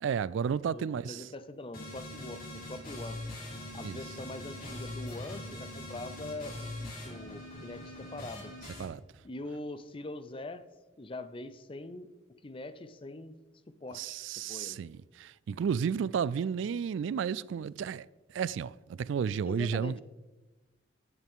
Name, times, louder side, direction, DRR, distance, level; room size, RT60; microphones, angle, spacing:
voice 1, 0.0-1.3 3.8-4.0 8.8-9.0 13.9-20.0, right 7 dB, 75° right, 0.3 m, -32 dB
voice 2, 0.7-3.2 3.7-8.5 9.2-10.6 11.0-12.1 12.4-13.4 13.8-14.2 14.5-14.8 19.4-20.0, left 2 dB, 30° left, 0.6 m, -43 dB
sound 1, 1.7-8.8, left 1 dB, 50° left, 3.6 m, -42 dB
15.5 x 8.1 x 3.7 m
head